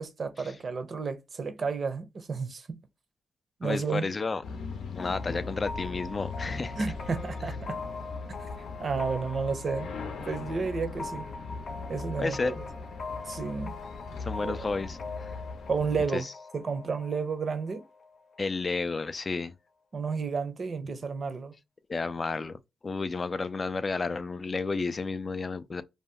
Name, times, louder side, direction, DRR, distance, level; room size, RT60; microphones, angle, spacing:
voice 1, 0.0-2.8 3.6-4.1 6.8-7.8 8.8-9.9 10.2-11.3 11.9-12.7 13.3-13.7 14.4-14.7 15.7-16.3 16.5-17.8 19.9-21.5, right 5 dB, 40° right, 0.6 m, -32 dB
voice 2, 3.6-4.4 4.9-6.8 12.2-12.5 14.3-15.0 15.2-15.3 16.1-16.2 18.4-19.5 21.9-22.6 22.8-25.8, left 4 dB, 30° left, 0.3 m, -31 dB
sound 1, 4.4-16.1, left 4 dB, 85° left, 0.7 m, -39 dB
sound 2, 5.0-18.5, left 3 dB, 50° left, 0.7 m, -42 dB
2.7 x 2.2 x 3.3 m
cardioid pair, 120°, 0 cm